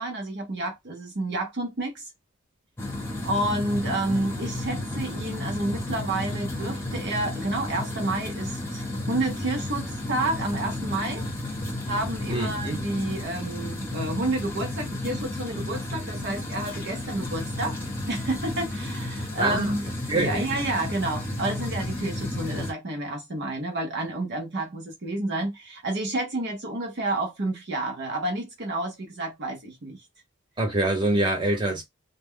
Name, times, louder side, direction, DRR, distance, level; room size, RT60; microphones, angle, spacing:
voice 1, 0.0-2.0 3.2-11.3 11.9-17.8 18.1-19.8 20.1-30.0, right 2 dB, 55° right, 0.7 m, -30 dB
sound 1, 2.8-22.7, left 1 dB, 10° left, 0.8 m, -32 dB
voice 2, 12.3-12.8 19.4-19.7 20.1-20.4 30.6-31.8, right 2 dB, 20° right, 0.9 m, -25 dB
2.2 x 2.1 x 3.5 m
head